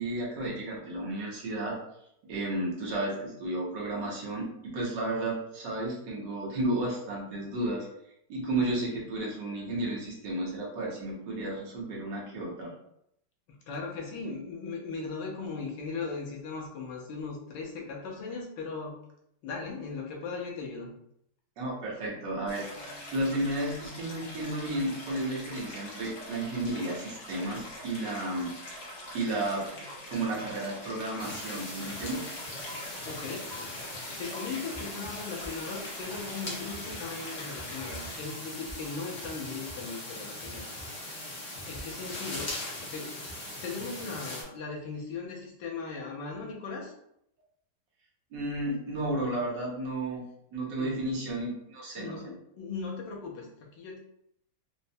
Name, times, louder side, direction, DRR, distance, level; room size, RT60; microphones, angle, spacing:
voice 1, 0.0-1.7 2.3-7.9 8.3-12.7 21.6-22.6 23.1-28.5 29.1-29.6 30.1-32.3 48.3-50.2 50.5-52.3, right 1 dB, 80° right, -3 dB, 1.6 m, -32 dB
voice 2, 13.5-19.0 19.4-20.9 33.0-33.8 34.2-40.7 41.1-41.3 41.7-42.5 42.8-43.3 43.6-46.9 50.8-51.0 52.0-54.0, left 4 dB, 90° left, -1 dB, 1.5 m, -38 dB
Stream, 22.5-38.2, left 1 dB, 55° left, 1.1 m, -44 dB
sound 1, 31.2-44.4, left 1 dB, 35° left, 0.8 m, -40 dB
4.3 x 2.1 x 2.6 m, 0.74 s
omnidirectional pair, 1.9 m